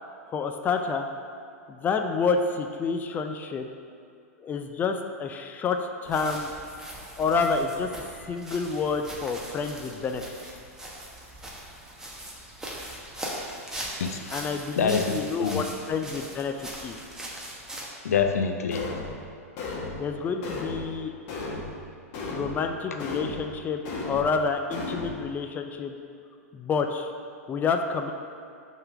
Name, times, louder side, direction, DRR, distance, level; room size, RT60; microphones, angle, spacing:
voice 1, 0.3-1.1 1.7-3.7 4.4-6.5 7.2-7.9 8.3-10.2 14.3-17.0 20.0-21.1 22.3-26.0 26.5-27.1 27.5-28.1, left 5 dB, 20° left, 5 dB, 0.4 m, -28 dB
sound 1, 6.1-17.8, right 1 dB, 5° right, 1.1 m, -40 dB
voice 2, 14.0-14.3 14.8-15.6 18.0-18.9, left 5 dB, 75° left, 6 dB, 0.5 m, -26 dB
sound 2, 18.7-19.1 19.6-20.0 20.4-20.8 21.3-21.7 22.1-22.6 23.0-23.4 23.9-24.3 24.7-25.1, left 3 dB, 50° left, 1.3 m, -34 dB
5.5 x 3.7 x 5.9 m, 2.5 s
hypercardioid pair, 105°, 8 cm